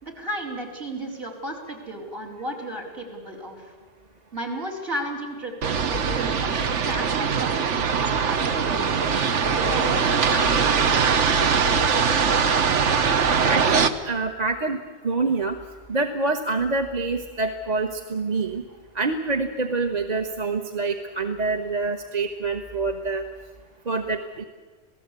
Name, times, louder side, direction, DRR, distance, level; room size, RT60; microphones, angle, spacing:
voice 1, 0.0-3.6 4.3-6.5 6.8-9.0 9.4-11.1, right 1 dB, 55° right, 3 dB, 4.4 m, -33 dB
sound 1, 5.6-13.9, right 6 dB, 85° right, 1.4 m, -22 dB
voice 2, 13.4-15.6 15.9-18.6 18.9-23.2 23.9-24.4, right 3 dB, 40° right, 5 dB, 1.2 m, -26 dB
27.5 x 18.0 x 8.3 m, 1.4 s
omnidirectional pair, 1.2 m